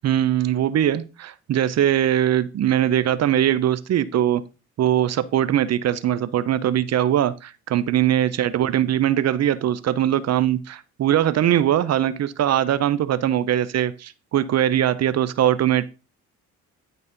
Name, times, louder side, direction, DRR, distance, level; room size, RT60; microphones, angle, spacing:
voice 1, 0.0-4.4 4.8-15.9, right 11 dB, 60° right, 0.7 m, -21 dB
11.0 x 4.1 x 5.2 m
cardioid pair, 90°, 30 cm